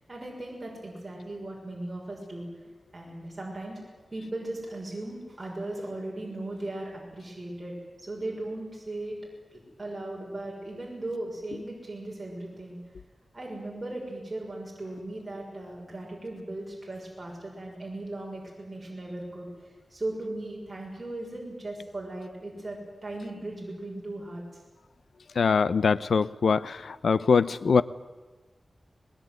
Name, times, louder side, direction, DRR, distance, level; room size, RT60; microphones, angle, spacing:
voice 1, 0.1-2.5 2.9-3.8 4.1-9.2 9.5-12.8 13.3-19.5 19.9-24.4, right 2 dB, 25° right, -3 dB, 6.2 m, -37 dB
voice 2, 25.4-26.6 27.0-27.8, left 5 dB, 80° left, 16 dB, 0.7 m, -22 dB
21.0 x 21.0 x 9.5 m, 1.2 s
wide cardioid pair, 110°, 0 cm